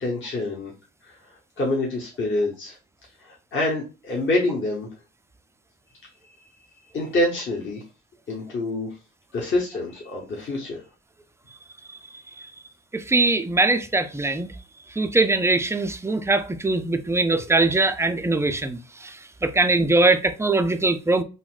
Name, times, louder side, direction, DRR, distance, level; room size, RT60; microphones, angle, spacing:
voice 1, 0.0-0.7 1.0-1.2 1.6-2.8 3.2-4.9 6.9-7.8 8.3-9.0 9.3-10.8, left 2 dB, 40° left, 1.0 m, -26 dB
voice 2, 12.9-14.5 15.0-21.2, right 2 dB, 10° right, 0.3 m, -22 dB
3.9 x 2.1 x 2.4 m
cardioid pair, 90°, 30 cm